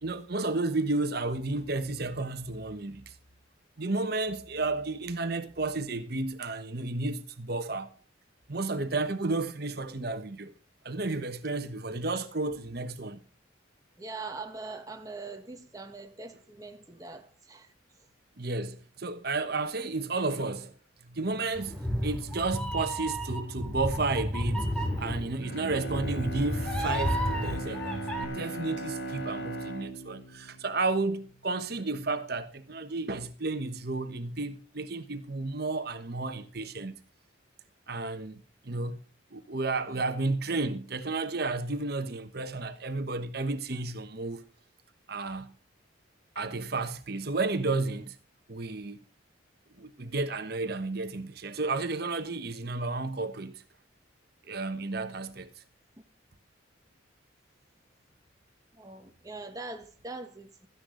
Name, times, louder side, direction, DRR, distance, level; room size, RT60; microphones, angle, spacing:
voice 1, 0.0-3.2 3.8-7.9 8.5-10.5 10.8-13.2 18.4-20.7 21.0-24.7 25.0-36.9 37.9-39.0 39.3-44.4 45.1-45.5 46.3-48.2 48.5-49.0 49.8-53.6 54.5-55.5, right 3 dB, 50° right, 1.1 m, -32 dB
voice 2, 14.0-17.7 21.7-21.9 39.9-40.0 58.7-60.7, right 3 dB, 20° right, 1.3 m, -42 dB
Meow, 21.5-28.2, equal, 5° left, 2.7 m, -32 dB
Bowed string instrument, 25.3-31.6 32.0-32.1, right 2 dB, 60° left, 2.1 m, -39 dB
16.5 x 13.0 x 3.9 m
head